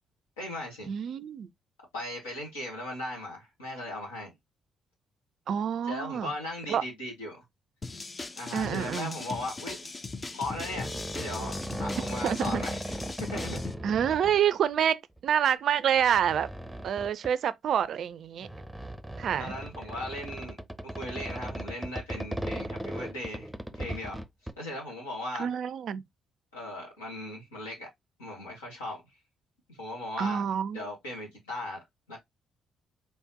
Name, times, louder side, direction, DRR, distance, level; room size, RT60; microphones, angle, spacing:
voice 1, 0.4-0.9 1.9-4.3 5.8-7.4 8.4-9.9 10.3-13.0 13.3-13.8 19.4-20.6 20.8-24.2 24.6-25.5 26.5-27.9 28.2-29.0 29.7-30.4 30.7-32.2, left 1 dB, 85° left, 1.9 m, -38 dB
voice 2, 0.9-1.5 5.5-6.3 6.7-6.8 8.5-9.2 12.2-12.6 13.8-16.5 16.8-18.5 19.2-19.5 25.4-26.0 30.2-30.9, right 9 dB, 60° right, 0.4 m, -27 dB
sound 1, 7.8-13.7, left 3 dB, 30° left, 0.7 m, -39 dB
sound 2, 9.3-9.4 10.5-14.4 15.2-15.3 15.9-17.3 18.4-24.5, right 1 dB, 5° right, 0.7 m, -37 dB
4.2 x 3.5 x 2.8 m
hypercardioid pair, 45°, 0 cm